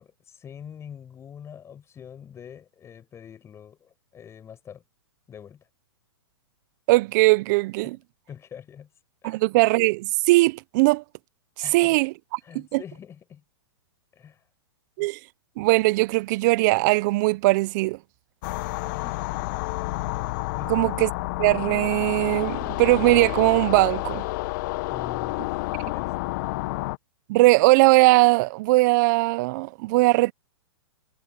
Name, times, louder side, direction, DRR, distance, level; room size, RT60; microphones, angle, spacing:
voice 1, 0.0-4.8 5.3-5.6 7.8-7.9 8.3-8.9 9.2-9.4 11.6-12.0 12.4-13.4 14.1-14.4 18.7-19.5 20.5-20.9 24.9-26.1, left 8 dB, 20° left, 6.1 m, -44 dB
voice 2, 6.9-8.0 9.2-11.0 11.7-12.8 15.0-15.2 15.6-18.0 20.7-21.1 21.4-24.2 27.3-30.3, right 22 dB, 45° right, 1.0 m, -20 dB
sound 1, 18.4-27.0, left 21 dB, 45° left, 1.3 m, -30 dB
hypercardioid pair, 120°, 13 cm